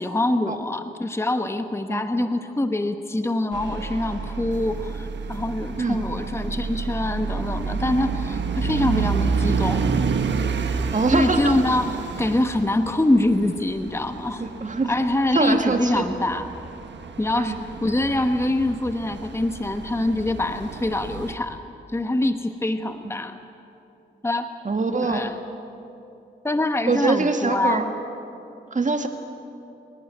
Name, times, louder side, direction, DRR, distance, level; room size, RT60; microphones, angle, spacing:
voice 1, 0.0-9.8 11.1-14.5 14.9-16.5 17.2-21.6 21.9-23.4 24.2-24.5 25.0-25.4 26.4-27.9, left 1 dB, 15° left, 8 dB, 1.1 m, -24 dB
sound 1, 3.5-21.3, right 5 dB, 70° right, 1.5 m, -29 dB
voice 2, 10.9-11.5 14.4-14.9 15.3-16.1 17.3-17.6 23.0-23.1 24.7-25.2 26.9-27.8 28.7-29.1, right 3 dB, 40° right, 5 dB, 2.2 m, -23 dB
29.5 x 11.5 x 9.9 m, 2.8 s
cardioid pair, 60°, 19 cm